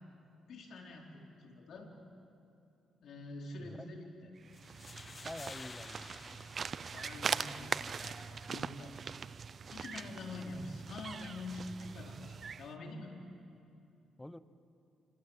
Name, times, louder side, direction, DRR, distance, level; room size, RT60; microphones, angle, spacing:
voice 1, 0.5-1.9 3.0-4.3 6.9-8.9 9.7-13.1, left 2 dB, 65° left, 0 dB, 4.4 m, -46 dB
sound 1, 4.4-12.7, right 6 dB, 45° right, 0.6 m, -41 dB
sound 2, 4.5-7.6, left 3 dB, 30° left, 1.3 m, -52 dB
voice 2, 5.2-6.4 14.2-14.4, left 1 dB, 10° left, 13 dB, 1.0 m, -47 dB
28.0 x 25.5 x 7.5 m, 2.6 s
cardioid pair, 90°, 0 cm